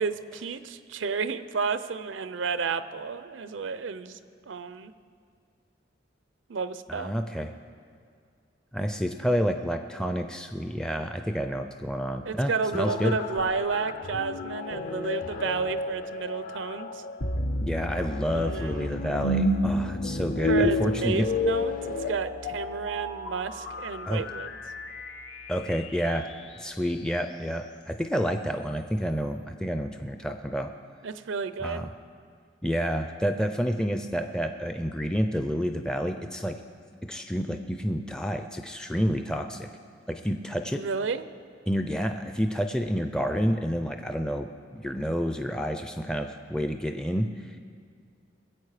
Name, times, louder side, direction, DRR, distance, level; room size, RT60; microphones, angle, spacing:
voice 1, 0.0-4.2 4.5-4.9 6.5-7.1 12.3-17.0 18.3-18.9 20.5-24.5 31.0-31.9 40.8-41.2, right 5 dB, 85° right, 13 dB, 0.6 m, -31 dB
voice 2, 6.9-7.5 8.7-13.1 17.6-21.3 24.1-24.2 25.5-26.3 26.6-30.7 31.6-31.9 32.6-36.6 37.0-39.7 40.1-40.8 41.7-44.5 44.8-47.6, equal, 5° left, 6 dB, 0.4 m, -29 dB
sound 1, 12.7-22.1, left 4 dB, 45° left, 0.6 m, -36 dB
sound 2, 17.2-26.3, left 1 dB, 75° left, 1.0 m, -30 dB
21.0 x 8.1 x 4.9 m, 2.2 s
head